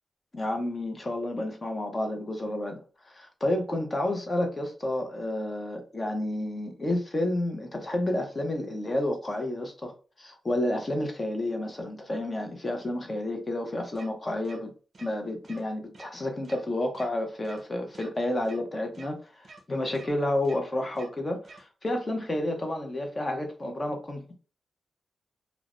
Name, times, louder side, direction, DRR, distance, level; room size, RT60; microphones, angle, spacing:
voice 1, 0.3-14.7 15.0-24.3, left 1 dB, 25° left, 0.6 m, -30 dB
sound 1, 13.9-14.1 14.4-14.6 14.9-15.1 15.4-15.6 15.9-16.1 16.4-16.6 16.9-17.1 17.4-17.6 17.9-18.1 18.4-18.6 18.9-19.1 19.4-19.6 19.9-20.1 20.4-20.6 20.9-21.1 21.4-21.6, right 3 dB, 45° right, 0.5 m, -49 dB
3.0 x 2.0 x 2.4 m
wide cardioid pair, 150°, 0 cm